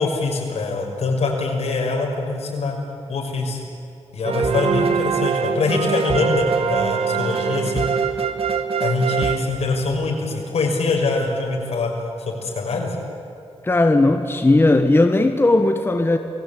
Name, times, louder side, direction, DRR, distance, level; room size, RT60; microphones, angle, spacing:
voice 1, 0.0-2.8 3.1-3.6 4.1-7.9 8.8-11.9 12.2-13.0, left 3 dB, 75° left, 1 dB, 5.8 m, -23 dB
sound 1, 4.2-10.2, right 6 dB, 60° right, 1.6 m, -23 dB
voice 2, 13.6-16.2, left 2 dB, 20° left, 6 dB, 1.4 m, -17 dB
28.5 x 20.0 x 8.6 m, 2.7 s
wide cardioid pair, 115°, 11 cm